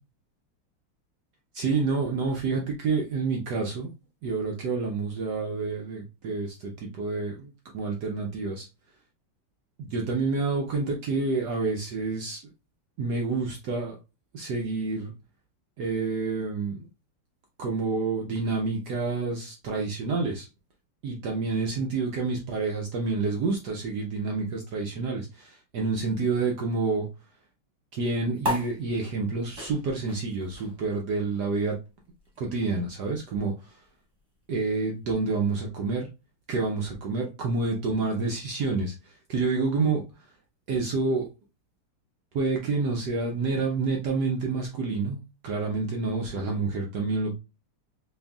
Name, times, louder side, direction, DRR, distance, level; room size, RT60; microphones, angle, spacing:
voice 1, 1.5-3.9 4.2-8.7 9.8-12.4 13.0-14.0 14.3-15.1 15.8-16.9 17.6-20.5 21.0-27.1 27.9-31.8 32.4-33.8 34.5-36.1 36.5-40.0 40.7-41.3 42.3-45.2 45.4-47.3, right 3 dB, 70° right, 1 dB, 1.0 m, -28 dB
sound 1, 28.4-35.2, equal, 15° right, 1.1 m, -38 dB
4.4 x 3.2 x 2.3 m, 0.28 s
omnidirectional pair, 2.4 m